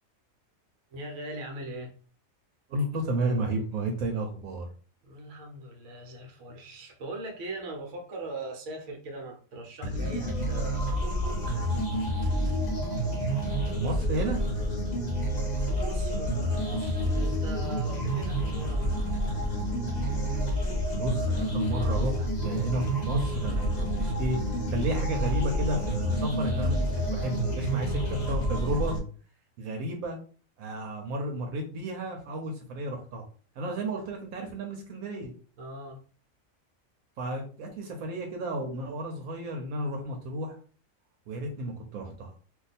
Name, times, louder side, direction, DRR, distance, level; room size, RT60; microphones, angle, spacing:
voice 1, 0.9-1.9 5.0-11.7 15.6-19.1 35.6-36.0, right 1 dB, 65° right, 2 dB, 1.1 m, -40 dB
voice 2, 2.7-4.7 13.8-14.4 21.0-24.4 24.7-28.9 29.6-30.2 30.6-33.3 33.6-35.3 37.2-40.6 41.3-42.3, right 1 dB, 80° right, 3 dB, 1.1 m, -32 dB
sound 1, 9.8-29.0, equal, 40° left, 0.7 m, -29 dB
2.6 x 2.3 x 4.1 m, 0.40 s
omnidirectional pair, 1.5 m